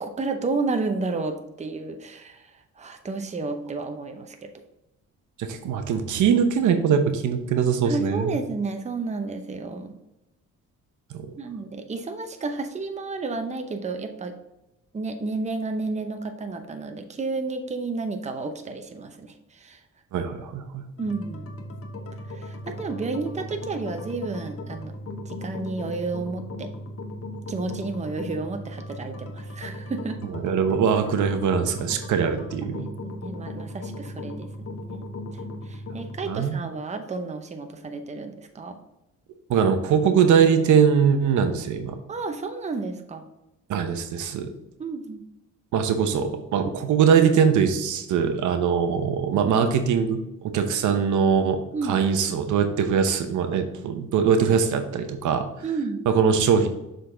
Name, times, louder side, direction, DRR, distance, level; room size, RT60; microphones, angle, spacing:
voice 1, 0.0-2.5 2.8-4.5 7.8-9.9 11.4-14.3 14.9-19.8 21.0-21.5 22.3-24.9 25.2-26.7 27.5-30.2 32.6-35.1 35.7-38.8 42.1-43.2 44.8-45.2 51.7-52.0 55.6-56.0, right 3 dB, 25° right, 6 dB, 0.7 m, -31 dB
voice 2, 5.4-8.4 11.1-11.2 20.1-20.6 30.2-32.8 36.3-36.5 39.5-42.0 43.7-44.5 45.7-55.5 56.1-56.7, right 7 dB, 75° right, 7 dB, 0.8 m, -22 dB
sound 1, 21.0-36.3, left 1 dB, 50° left, 1.0 m, -37 dB
6.6 x 3.9 x 3.8 m, 0.91 s
cardioid pair, 90°, 30 cm